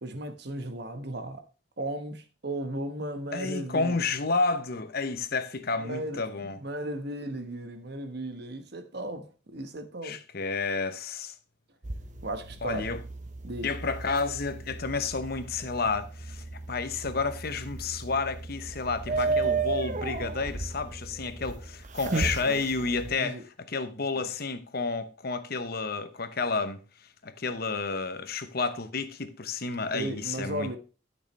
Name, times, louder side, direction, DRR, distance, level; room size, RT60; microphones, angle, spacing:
voice 1, 0.0-1.4 1.8-4.0 5.8-10.2 12.2-12.8 13.4-13.7 19.1-19.6 22.0-23.4 24.1-24.3 29.9-30.8, right 1 dB, 55° right, 1.2 m, -36 dB
voice 2, 3.3-6.6 10.0-11.3 12.6-13.0 13.6-23.4 23.7-26.8 27.2-30.8, left 4 dB, 50° left, 0.9 m, -31 dB
sound 1, 11.8-23.1, right 3 dB, 40° right, 0.7 m, -34 dB
12.5 x 6.4 x 3.2 m
head